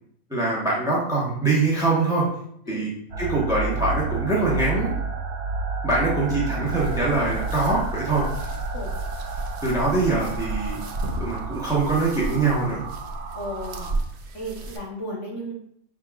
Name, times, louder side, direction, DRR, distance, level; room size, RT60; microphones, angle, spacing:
voice 1, 0.3-2.2 2.7-2.9 3.2-4.9 5.8-8.2 9.6-12.8, right 3 dB, 5° right, -5 dB, 1.0 m, -23 dB
sound 1, 3.1-14.0, right 3 dB, 85° right, 1.1 m, -31 dB
sound 2, 6.7-14.8, right 2 dB, 60° right, 0.8 m, -33 dB
voice 2, 13.3-13.9 14.3-15.5, equal, 55° left, -3 dB, 1.3 m, -34 dB
5.7 x 3.7 x 2.4 m, 0.69 s
omnidirectional pair, 1.5 m